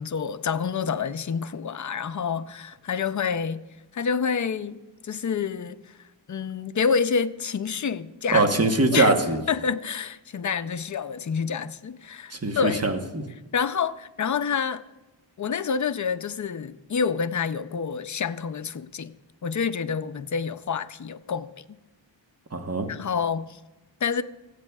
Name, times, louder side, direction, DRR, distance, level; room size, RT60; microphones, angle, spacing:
voice 1, 0.0-5.9 6.3-8.5 8.9-9.1 9.5-12.8 13.5-14.8 15.4-21.6 22.9-23.6 24.0-24.2, left 6 dB, 40° left, 0.5 m, -28 dB
voice 2, 8.3-9.4 12.3-13.2 22.5-22.9, right 2 dB, 30° right, 1.1 m, -22 dB
24.5 x 8.3 x 2.3 m
wide cardioid pair, 60°, 47 cm